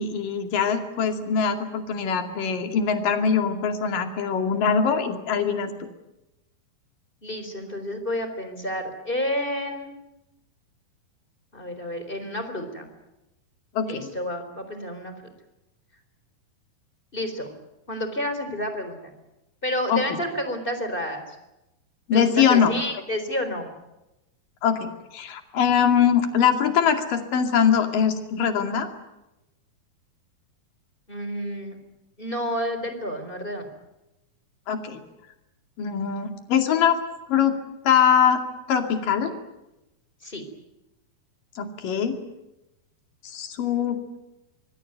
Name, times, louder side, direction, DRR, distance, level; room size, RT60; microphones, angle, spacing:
voice 1, 0.0-5.9 13.8-14.0 19.9-20.0 22.1-22.7 24.6-28.9 34.7-35.0 35.8-37.0 37.3-37.6 37.8-38.4 38.7-39.3 41.6-42.2 43.2-44.0, left 7 dB, 65° left, 6 dB, 4.0 m, -22 dB
voice 2, 7.2-9.9 11.5-12.9 13.8-15.3 17.1-17.5 17.9-19.1 19.6-21.2 22.1-23.7 31.1-31.8 32.2-33.7 40.2-40.4, equal, 15° left, 8 dB, 3.6 m, -30 dB
25.0 x 22.0 x 9.2 m, 0.94 s
omnidirectional pair, 4.4 m